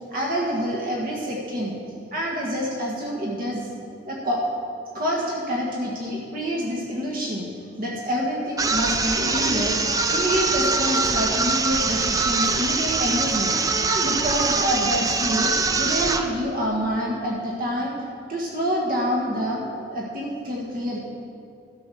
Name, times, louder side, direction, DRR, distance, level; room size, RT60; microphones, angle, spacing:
voice 1, 0.1-1.8 2.1-3.7 4.1-4.4 4.9-7.5 7.8-9.8 10.1-13.5 13.9-15.5 15.8-17.9 18.3-21.0, equal, 45° right, -3 dB, 1.5 m, -27 dB
sound 1, 8.6-16.3, right 4 dB, 20° right, 0.4 m, -23 dB
12.5 x 6.2 x 6.2 m, 2.5 s
head